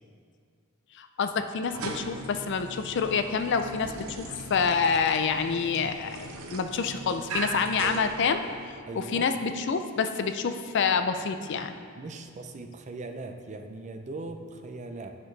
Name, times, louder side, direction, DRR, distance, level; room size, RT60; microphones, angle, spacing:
voice 1, 0.9-8.4 8.9-11.8, left 5 dB, 55° left, 8 dB, 0.4 m, -27 dB
sound 1, 1.6-8.8, right 2 dB, 85° right, 0.7 m, -39 dB
voice 2, 8.9-9.3 12.0-15.2, right 2 dB, 35° right, 6 dB, 0.4 m, -39 dB
9.4 x 5.9 x 3.2 m, 2.2 s
head